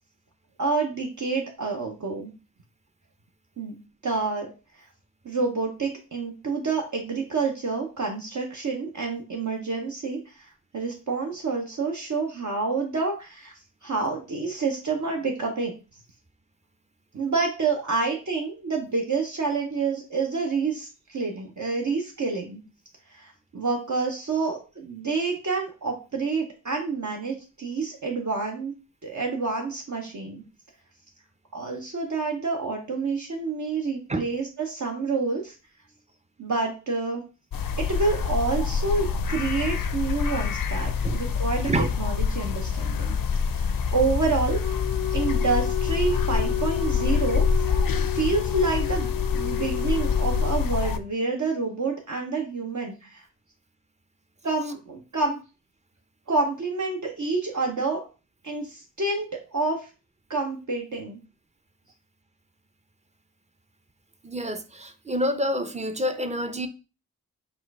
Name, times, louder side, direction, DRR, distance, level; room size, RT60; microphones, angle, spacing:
voice 1, 0.6-2.3 3.6-3.7 4.0-4.5 5.2-13.5 13.8-15.7 17.1-22.6 23.1-28.7 29.0-30.4 31.5-35.5 36.4-37.2 37.8-41.7 42.0-43.2 43.5-44.8 45.1-47.4 48.1-53.3 54.4-55.4 56.3-58.1 58.4-59.9 60.3-61.2, right 4 dB, 60° right, 0.8 m, -28 dB
sound 1, 37.5-51.0, left 5 dB, 75° left, 0.5 m, -26 dB
Wind instrument woodwind instrument, 44.6-50.7, left 13 dB, 90° right, 1.7 m, -32 dB
voice 2, 64.2-66.7, equal, 20° right, 0.5 m, -27 dB
4.3 x 2.4 x 4.6 m
wide cardioid pair, 50°, 34 cm